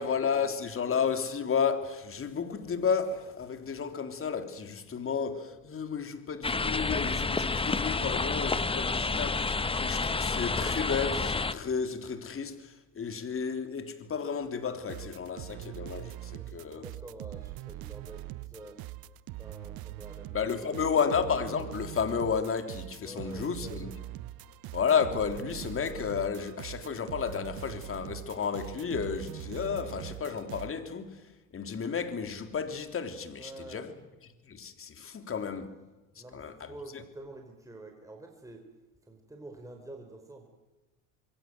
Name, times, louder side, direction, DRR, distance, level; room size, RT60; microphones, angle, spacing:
voice 1, 0.0-16.9 20.3-23.9 24.7-31.2 31.5-33.9 34.5-35.7 36.2-36.7, left 6 dB, 30° left, 3.4 m, -32 dB
sound 1, 6.4-11.5, left 4 dB, 15° left, 1.2 m, -29 dB
sound 2, 14.9-30.7, right 16 dB, 60° right, 1.1 m, -42 dB
voice 2, 16.3-18.8 19.4-21.1 23.0-23.8 33.4-33.9 36.1-38.6 39.0-40.5, right 2 dB, 10° right, 4.7 m, -48 dB
26.5 x 22.5 x 7.8 m
supercardioid pair, 90°, 40 cm